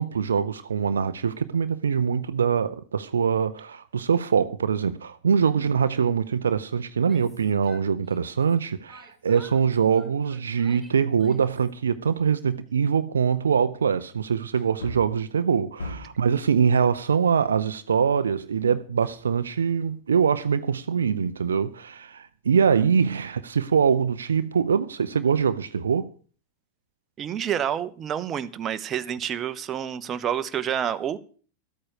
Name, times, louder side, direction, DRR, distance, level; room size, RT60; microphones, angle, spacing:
voice 1, 0.0-26.1, right 6 dB, 70° right, 0.6 m, -23 dB
Yell, 6.9-8.5 8.9-11.7, equal, ahead, 3.8 m, -52 dB
Wood, 14.5-16.3 19.0-19.8 20.1-20.2, left 1 dB, 70° left, 2.6 m, -40 dB
voice 2, 27.2-31.2, right 9 dB, 25° right, 0.9 m, -28 dB
13.5 x 8.7 x 6.6 m
figure-of-eight pair, 90°, 0 cm